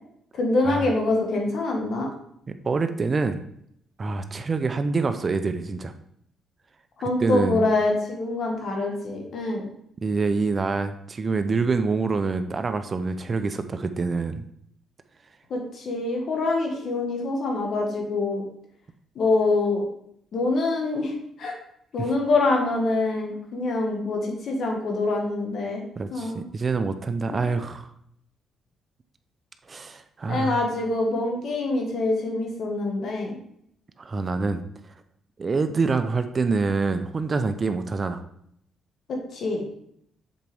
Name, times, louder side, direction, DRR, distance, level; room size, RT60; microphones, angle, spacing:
voice 1, 0.3-2.1 7.0-9.6 15.5-18.4 19.1-19.8 20.3-21.1 21.4-21.5 21.9-25.8 26.1-26.4 27.3-27.4 30.3-33.3 39.1-39.6, left 2 dB, 60° left, 1 dB, 1.6 m, -25 dB
voice 2, 2.5-3.4 4.0-5.9 7.2-7.6 10.0-14.4 26.0-27.9 29.7-30.6 34.0-34.6 35.4-38.2, right 4 dB, 35° right, 9 dB, 0.5 m, -26 dB
7.4 x 4.5 x 3.5 m, 0.71 s
cardioid pair, 90°, 0 cm